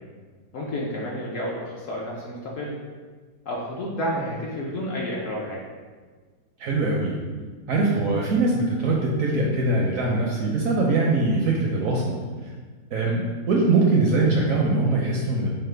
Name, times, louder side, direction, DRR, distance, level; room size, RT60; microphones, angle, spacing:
voice 1, 0.5-2.8 3.5-5.6, equal, 65° left, -4 dB, 0.8 m, -30 dB
voice 2, 6.6-7.2 7.7-12.2 12.4-12.5 12.9-15.5, right 3 dB, 70° right, -2 dB, 0.8 m, -22 dB
5.5 x 2.1 x 3.2 m, 1.5 s
omnidirectional pair, 1.8 m